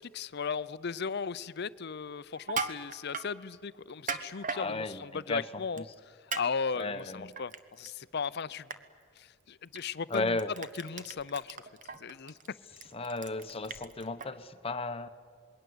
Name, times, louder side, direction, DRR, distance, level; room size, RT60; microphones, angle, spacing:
voice 1, 0.0-8.7 9.2-11.6 12.0-12.6, left 5 dB, 50° left, 0.6 m, -37 dB
Crushing, 2.4-3.3 3.9-4.6 5.8-5.9 6.3-6.4 6.8-7.9 8.2-8.4 8.7-8.8 9.7-9.8 10.1-14.3, right 5 dB, 40° right, 1.2 m, -37 dB
voice 2, 4.5-5.8 6.7-7.3 10.1-10.5 12.9-15.1, left 2 dB, 25° left, 1.0 m, -35 dB
27.0 x 21.5 x 8.0 m
head